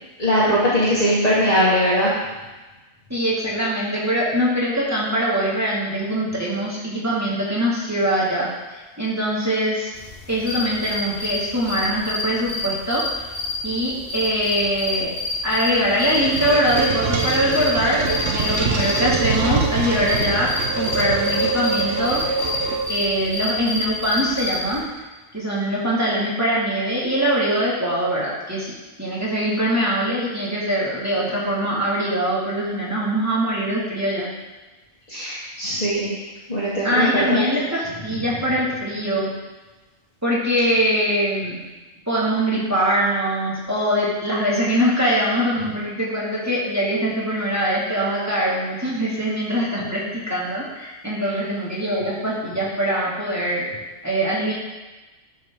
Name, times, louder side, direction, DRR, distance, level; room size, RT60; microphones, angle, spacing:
voice 1, 0.2-2.1 35.1-36.1 36.5-37.5, equal, 30° left, -9 dB, 1.7 m, -20 dB
voice 2, 3.1-9.9 10.3-13.4 13.6-15.1 15.4-22.2 22.9-24.8 25.3-34.3 36.8-39.3 40.2-41.6 42.1-53.7 54.0-54.5, equal, 10° right, -7 dB, 2.1 m, -23 dB
sound 1, 9.9-24.8, left 2 dB, 50° left, 1.9 m, -29 dB
sound 2, 15.5-23.2, right 4 dB, 55° right, 1.2 m, -24 dB
11.0 x 5.5 x 3.7 m, 1.2 s
omnidirectional pair, 1.4 m